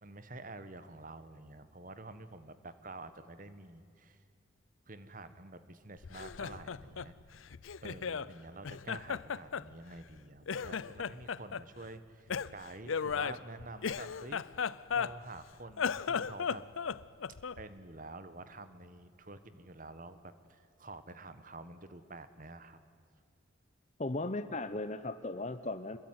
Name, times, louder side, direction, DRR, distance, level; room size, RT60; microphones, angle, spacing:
voice 1, 0.0-4.2 4.9-7.1 7.8-14.4 14.9-16.6 17.6-22.8, right 2 dB, 40° right, 12 dB, 1.4 m, -48 dB
Laughter, 6.0-8.3 8.6-10.2 10.5-11.6 12.3-15.4 15.7-17.7, left 6 dB, 80° left, 0.6 m, -36 dB
voice 2, 24.0-26.0, left 2 dB, 35° left, 11 dB, 0.8 m, -37 dB
27.0 x 21.5 x 9.7 m, 2.4 s
head